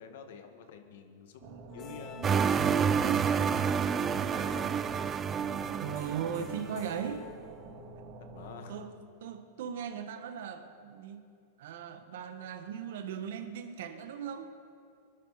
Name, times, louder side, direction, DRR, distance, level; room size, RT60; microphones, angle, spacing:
voice 1, 0.0-2.9 3.2-5.0 8.3-8.8, left 6 dB, 70° left, 6 dB, 1.7 m, -49 dB
sound 1, 1.4-8.6, right 3 dB, 50° right, 2.0 m, -46 dB
sound 2, 1.7-8.0, left 9 dB, 35° left, 0.7 m, -51 dB
sound 3, 2.2-6.6, right 7 dB, 25° right, 0.4 m, -29 dB
voice 2, 5.8-7.3 8.7-8.9 9.2-11.2 11.6-14.5, right 8 dB, 75° right, 6 dB, 1.5 m, -38 dB
24.0 x 12.0 x 4.2 m, 2.5 s
supercardioid pair, 135°, 0 cm